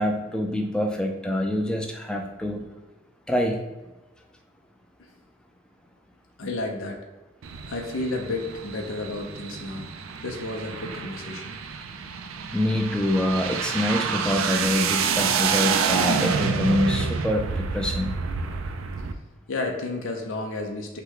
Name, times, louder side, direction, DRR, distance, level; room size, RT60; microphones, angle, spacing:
voice 1, 0.0-2.7 3.3-3.6 12.5-18.1, left 1 dB, 5° left, 2 dB, 0.5 m, -25 dB
voice 2, 6.4-7.0 7.7-9.9 10.2-11.6 19.5-21.0, left 2 dB, 80° left, 1 dB, 0.7 m, -31 dB
sound 1, 7.4-19.1, right 6 dB, 85° right, 0.4 m, -28 dB
5.6 x 2.2 x 3.8 m, 1.1 s
head